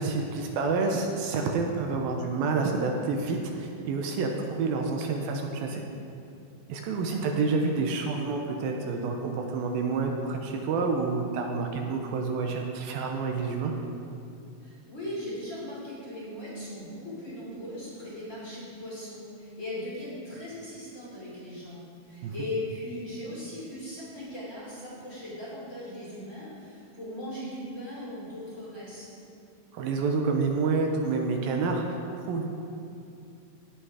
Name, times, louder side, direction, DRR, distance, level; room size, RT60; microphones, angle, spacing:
voice 1, 0.0-5.8 6.7-13.7 22.2-22.3 29.7-32.4, right 4 dB, 80° right, 2 dB, 2.6 m, -28 dB
voice 2, 7.0-7.6 14.6-29.3, left 1 dB, 20° left, -8 dB, 3.1 m, -39 dB
16.5 x 6.1 x 4.9 m, 2.6 s
omnidirectional pair, 4.3 m